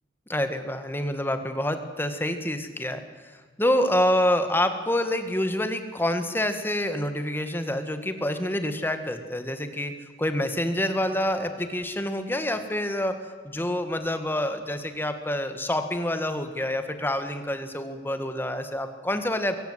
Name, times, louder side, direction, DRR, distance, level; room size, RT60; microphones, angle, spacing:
voice 1, 0.3-3.0 3.6-9.9 10.2-13.2 13.4-19.6, left 1 dB, 10° left, 8 dB, 1.7 m, -27 dB
23.0 x 17.5 x 8.1 m, 1.5 s
head